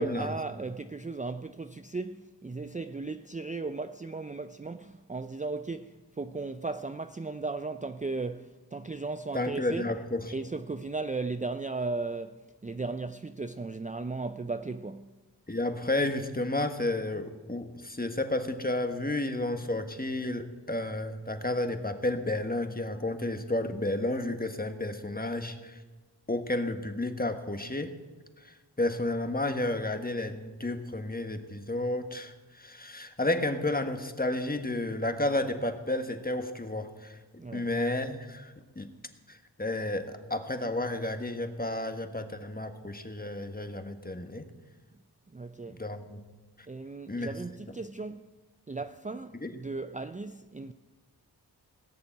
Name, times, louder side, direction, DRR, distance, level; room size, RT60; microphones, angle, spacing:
voice 1, 0.0-9.9 10.3-15.1 37.4-37.7 45.3-45.8 46.7-48.3 48.7-50.7, right 3 dB, 20° right, 0.5 m, -36 dB
voice 2, 9.3-10.3 15.5-25.8 26.3-27.9 28.4-37.2 37.5-38.9 39.3-44.5 45.8-46.2 47.1-47.3 49.4-49.5, left 2 dB, 20° left, 1.5 m, -32 dB
18.5 x 6.8 x 9.2 m
wide cardioid pair, 55°, 40 cm